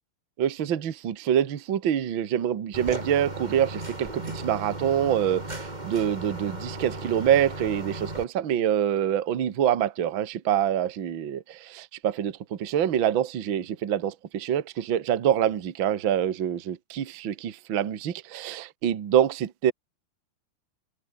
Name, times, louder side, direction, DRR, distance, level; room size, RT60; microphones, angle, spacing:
voice 1, 0.4-19.7, right 10 dB, 90° right, 1.0 m, -26 dB
sound 1, 2.7-8.2, right 2 dB, 10° right, 2.7 m, -36 dB
omnidirectional pair, 4.9 m